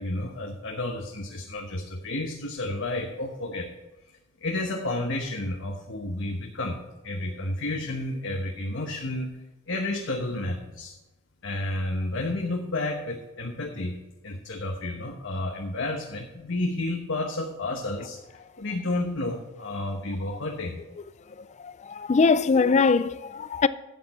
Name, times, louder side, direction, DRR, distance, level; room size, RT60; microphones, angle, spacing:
voice 1, 0.0-3.7 4.4-6.8 7.0-9.3 9.7-10.9 11.4-14.0 14.2-18.2 18.6-20.8, left 2 dB, 65° left, 1.2 m, -31 dB
voice 2, 21.6-23.7, left 4 dB, 35° left, 0.4 m, -22 dB
12.5 x 8.4 x 4.3 m
head